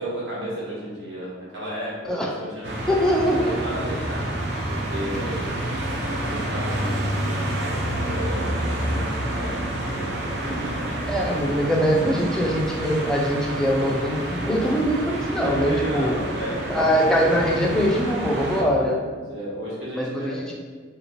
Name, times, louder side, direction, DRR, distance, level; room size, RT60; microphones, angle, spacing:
voice 1, 0.0-2.7 3.1-4.3 4.7-5.5 6.1-10.1 10.4-11.2 14.4-14.6 15.4-16.6 18.3-20.4, right 1 dB, 80° right, -7 dB, 1.2 m, -33 dB
sound 1, 2.6-18.6, right 1 dB, 60° right, 0.5 m, -28 dB
voice 2, 2.9-3.7 11.1-16.1 16.7-19.0 19.9-20.4, equal, 5° left, -2 dB, 0.4 m, -22 dB
3.4 x 2.8 x 2.9 m, 1.5 s
head